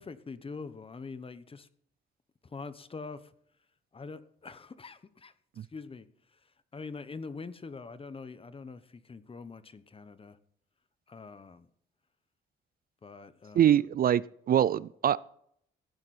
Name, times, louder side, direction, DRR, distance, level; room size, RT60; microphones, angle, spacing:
voice 1, 0.0-1.7 2.4-3.3 3.9-6.4 6.7-10.4 11.1-11.7 13.0-13.7, left 4 dB, 30° left, 1.1 m, -44 dB
voice 2, 13.5-14.2 14.5-15.2, right 10 dB, 50° right, 0.4 m, -23 dB
15.5 x 9.8 x 4.3 m
cardioid pair, 90°, 20 cm